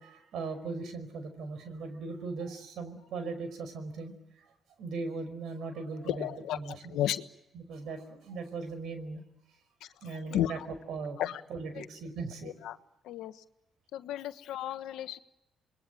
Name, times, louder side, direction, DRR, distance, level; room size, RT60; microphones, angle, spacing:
voice 1, 0.0-4.1 4.4-4.5 4.8-7.0 7.5-9.2 10.0-12.6, right 4 dB, 75° right, 10 dB, 5.3 m, -39 dB
voice 2, 6.0-7.3 9.8-10.7 11.2-11.4 11.7-11.9 12.4-12.8 13.0-13.4 13.9-15.2, left 12 dB, 80° left, 11 dB, 1.2 m, -34 dB
28.0 x 21.5 x 9.0 m, 0.91 s
supercardioid pair, 70°, 0 cm